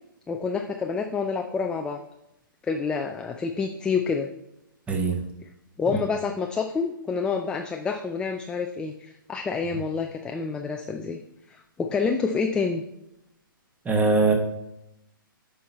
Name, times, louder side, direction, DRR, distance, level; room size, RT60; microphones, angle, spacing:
voice 1, 0.3-2.0 2.6-4.3 5.8-11.2 11.5-12.8, left 5 dB, 10° left, 4 dB, 0.4 m, -28 dB
voice 2, 4.9-5.2 13.8-14.3, right 3 dB, 10° right, 3 dB, 1.2 m, -21 dB
9.3 x 5.6 x 4.1 m, 0.85 s
hypercardioid pair, 130°, 12 cm